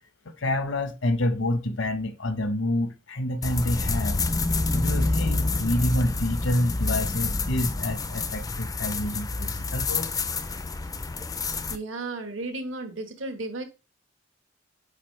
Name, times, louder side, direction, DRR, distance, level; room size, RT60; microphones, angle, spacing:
voice 1, 0.4-4.2 4.7-10.2, left 1 dB, 65° left, 1.0 m, -28 dB
sound 1, 3.4-11.8, left 3 dB, 20° left, 0.5 m, -28 dB
voice 2, 11.7-13.6, right 2 dB, 75° right, 1.4 m, -34 dB
8.8 x 4.1 x 3.2 m
head